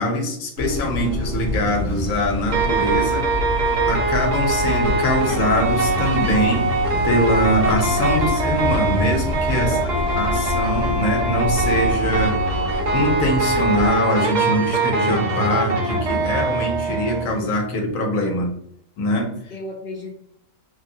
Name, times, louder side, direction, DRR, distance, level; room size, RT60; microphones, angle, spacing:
voice 1, 0.0-3.3 3.9-6.7 7.0-9.8 10.2-12.4 12.9-18.5 19.0-19.3, left 1 dB, 75° left, 2 dB, 1.1 m, -22 dB
sound 1, 0.6-13.9, left 1 dB, 80° right, 1.3 m, -29 dB
sound 2, 2.5-17.2, right 3 dB, 45° right, 0.6 m, -22 dB
voice 2, 9.6-10.3 19.5-20.1, left 1 dB, 55° left, -5 dB, 0.7 m, -34 dB
3.4 x 2.2 x 2.6 m, 0.70 s
omnidirectional pair, 1.5 m